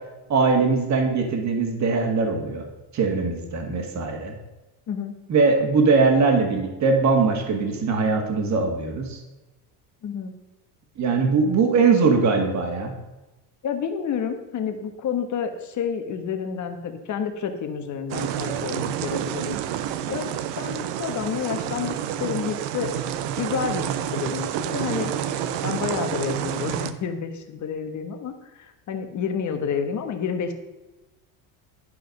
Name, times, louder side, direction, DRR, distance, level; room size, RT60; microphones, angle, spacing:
voice 1, 0.3-2.7 2.9-4.4 5.3-9.2 11.0-12.9, right 4 dB, 35° right, 4 dB, 1.8 m, -21 dB
voice 2, 10.0-10.3 13.6-19.6 20.1-20.3 20.6-21.9 22.2-22.9 23.4-25.1 25.6-30.5, left 7 dB, 40° left, 7 dB, 1.3 m, -29 dB
sound 1, 18.1-26.9, right 10 dB, 65° right, 0.8 m, -29 dB
11.0 x 5.6 x 5.3 m, 1.1 s
cardioid pair, 135°, 46 cm